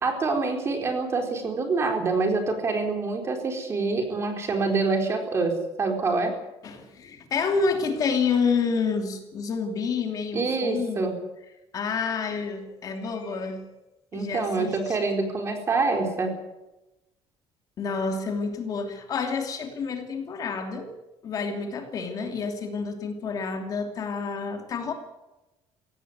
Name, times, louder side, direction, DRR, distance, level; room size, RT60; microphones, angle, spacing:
voice 1, 0.0-5.5 5.8-6.3 10.3-11.1 14.1-16.3, right 3 dB, 25° right, 3 dB, 4.2 m, -26 dB
voice 2, 6.6-11.2 11.7-13.6 14.1-15.0 17.8-20.9 21.2-24.9, left 5 dB, 40° left, 5 dB, 2.8 m, -29 dB
17.5 x 16.5 x 9.5 m, 0.98 s
cardioid pair, 165°, 10 cm